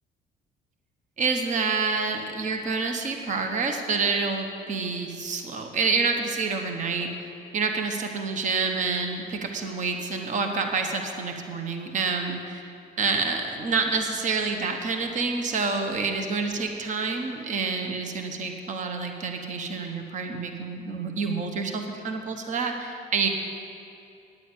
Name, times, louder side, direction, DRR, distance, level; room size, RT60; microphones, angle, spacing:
voice 1, 1.2-7.1 7.5-12.6 13.0-23.3, right 4 dB, 45° right, 5 dB, 1.3 m, -28 dB
9.6 x 9.3 x 8.6 m, 2.6 s
cardioid pair, 110°, 17 cm